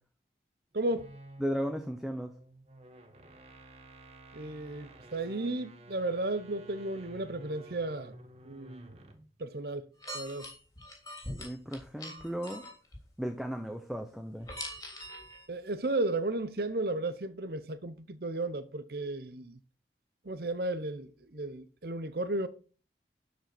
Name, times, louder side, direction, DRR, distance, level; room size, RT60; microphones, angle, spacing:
voice 1, 0.7-1.1 4.3-8.1 8.4-9.0 9.4-9.9 10.1-10.5 15.5-19.6 20.2-22.5, right 2 dB, 55° right, 0.8 m, -34 dB
sound 1, 0.8-9.3, right 1 dB, 35° right, 1.4 m, -52 dB
voice 2, 1.4-2.3 11.4-12.6 13.2-14.5, equal, ahead, 0.9 m, -35 dB
sound 2, 10.0-13.0 14.4-15.5, left 1 dB, 20° left, 3.2 m, -42 dB
12.0 x 5.1 x 6.1 m
head